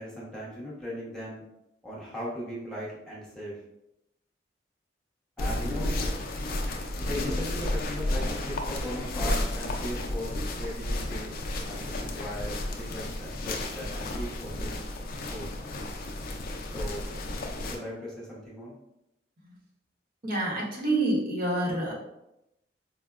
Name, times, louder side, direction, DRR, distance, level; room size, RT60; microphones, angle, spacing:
voice 1, 0.0-1.4 1.8-3.6 5.4-5.9 7.0-14.8 15.3-15.5 16.7-17.0 17.5-18.8, equal, 5° left, -7 dB, 0.7 m, -38 dB
sound 1, 5.4-17.8, left 1 dB, 55° left, 0.4 m, -32 dB
voice 2, 20.2-21.9, right 2 dB, 55° right, -3 dB, 0.8 m, -27 dB
4.3 x 2.0 x 2.3 m, 0.86 s
head